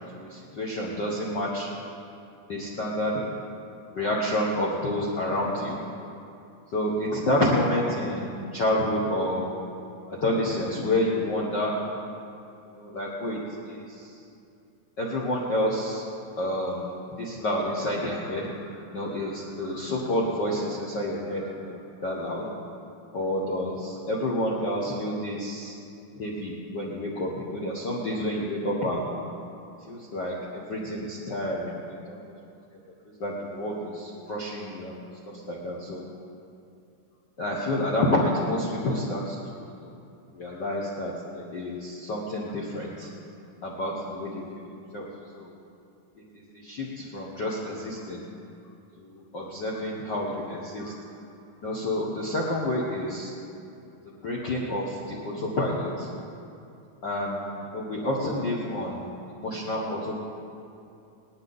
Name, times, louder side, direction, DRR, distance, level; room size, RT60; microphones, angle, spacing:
voice 1, 0.1-1.8 2.5-3.3 3.9-5.8 6.7-9.5 10.1-11.9 12.7-13.4 13.7-14.2 15.0-16.0 16.4-22.5 23.1-25.8 26.2-29.3 29.9-31.8 32.1-32.3 33.0-35.0 35.2-36.1 37.4-40.0 40.3-43.1 43.6-45.1 45.3-45.5 46.3-48.3 49.0-50.9 51.6-53.3 54.0-56.1 57.0-60.1, left 1 dB, 50° left, -4 dB, 1.4 m, -29 dB
19.0 x 11.5 x 4.0 m, 2.6 s
omnidirectional pair, 3.4 m